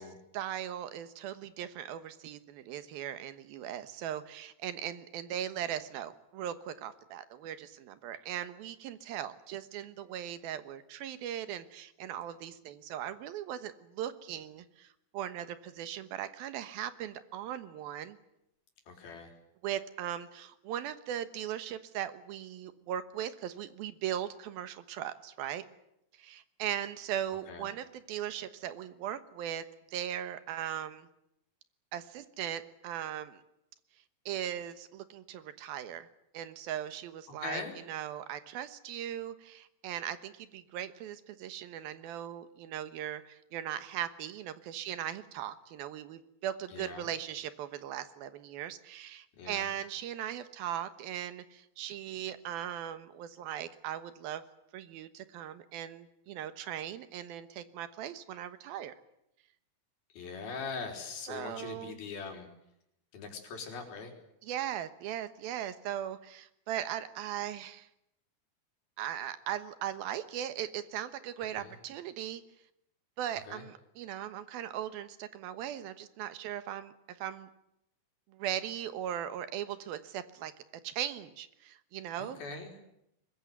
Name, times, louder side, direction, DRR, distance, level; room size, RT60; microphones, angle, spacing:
voice 1, 0.3-18.2 19.6-25.6 26.2-31.1 31.9-33.4 34.3-36.1 36.3-37.6 37.9-54.4 54.7-58.9 61.3-62.0 64.4-67.9 69.0-72.4 73.2-77.5 78.3-80.5 80.8-82.4, right 10 dB, 85° right, 12 dB, 3.1 m, -39 dB
voice 2, 18.9-19.4 27.5-27.7 37.4-37.8 46.7-47.1 49.3-49.7 60.1-62.5 63.1-64.1 71.4-71.7 73.4-73.7 82.2-82.8, left 4 dB, 85° left, 3 dB, 5.8 m, -41 dB
23.0 x 21.0 x 9.4 m, 0.81 s
omnidirectional pair, 4.2 m